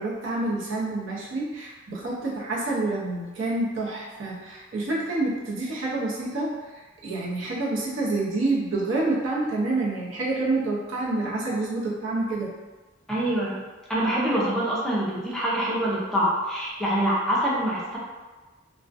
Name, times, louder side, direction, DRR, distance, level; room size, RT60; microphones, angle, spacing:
voice 1, 0.0-6.7 7.0-12.5, right 2 dB, 75° right, -5 dB, 0.6 m, -28 dB
voice 2, 13.1-13.6 13.9-18.0, right 1 dB, ahead, -7 dB, 0.5 m, -25 dB
2.4 x 2.1 x 2.5 m, 1.3 s
head